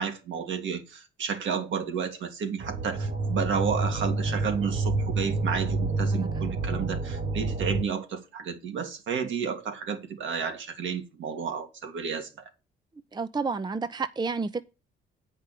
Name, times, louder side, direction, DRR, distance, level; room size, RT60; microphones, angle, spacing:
voice 1, 0.0-12.3, right 6 dB, 70° right, 2.2 m, -31 dB
sound 1, 2.6-7.8, right 3 dB, 40° right, 1.2 m, -28 dB
voice 2, 13.1-14.6, right 4 dB, 20° right, 0.7 m, -30 dB
8.8 x 5.4 x 6.6 m
cardioid pair, 90°, 20 cm